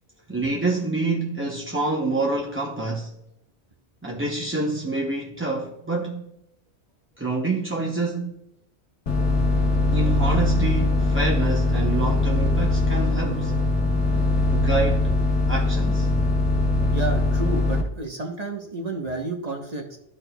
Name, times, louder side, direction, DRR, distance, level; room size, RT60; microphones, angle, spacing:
voice 1, 0.3-3.1 4.0-6.3 7.2-8.3 9.9-13.6 14.5-15.1 15.5-16.1, right 2 dB, 15° right, 0.5 m, -27 dB
sound 1, 9.1-17.8, left 2 dB, 85° left, 1.4 m, -21 dB
voice 2, 16.9-20.0, right 3 dB, 40° right, 0.9 m, -31 dB
12.5 x 4.3 x 2.2 m
omnidirectional pair, 1.1 m